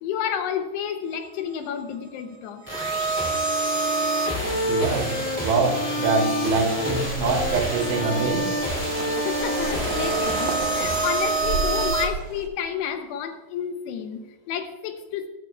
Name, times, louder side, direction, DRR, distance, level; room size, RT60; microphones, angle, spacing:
voice 1, 0.0-2.7 9.2-15.3, left 8 dB, 80° left, 6 dB, 2.6 m, -30 dB
sound 1, 2.7-12.0, right 2 dB, 5° left, 1.3 m, -26 dB
voice 2, 4.7-5.1 5.4-8.5, right 3 dB, 85° right, 4 dB, 4.2 m, -24 dB
sound 2, 7.1-12.5, right 4 dB, 70° right, 2.4 m, -33 dB
18.5 x 13.0 x 2.3 m, 1.2 s
omnidirectional pair, 5.2 m